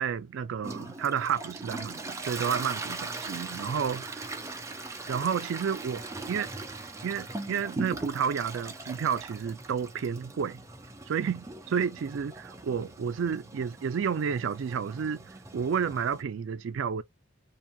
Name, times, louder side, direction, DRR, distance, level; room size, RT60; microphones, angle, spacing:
voice 1, 0.0-4.4 5.1-6.5 7.0-10.6 11.1-17.0, right 7 dB, 75° right, 0.4 m, -31 dB
Toilet flush, 0.6-16.2, right 2 dB, 15° right, 0.5 m, -40 dB
2.8 x 2.6 x 2.2 m
head